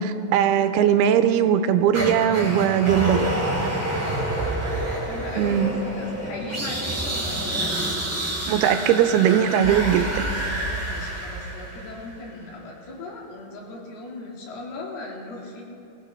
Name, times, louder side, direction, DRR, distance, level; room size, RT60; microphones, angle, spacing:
voice 1, 0.0-3.3 5.4-5.7 8.5-10.1, right 9 dB, 85° right, 9 dB, 2.6 m, -20 dB
sound 1, 1.9-12.1, right 1 dB, 15° right, 2.7 m, -28 dB
voice 2, 4.0-4.5 5.0-7.7 10.9-15.6, left 2 dB, 75° left, -2 dB, 4.3 m, -38 dB
23.0 x 15.0 x 3.4 m, 2.8 s
omnidirectional pair, 4.5 m